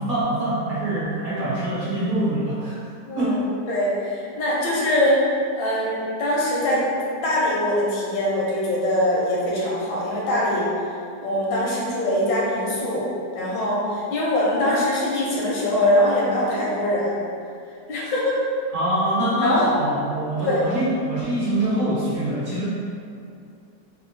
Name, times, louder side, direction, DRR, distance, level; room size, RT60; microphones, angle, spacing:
voice 1, 0.0-2.8 3.2-3.4 18.7-22.7, right 1 dB, 55° right, -10 dB, 0.9 m, -24 dB
voice 2, 3.1-3.4 3.7-5.2 5.5-6.8 7.2-10.7 11.2-13.1 13.3-17.2 17.9-18.4 19.4-19.7 20.4-20.7, left 1 dB, 90° left, -5 dB, 1.4 m, -22 dB
3.5 x 2.0 x 2.6 m, 2.4 s
omnidirectional pair, 1.9 m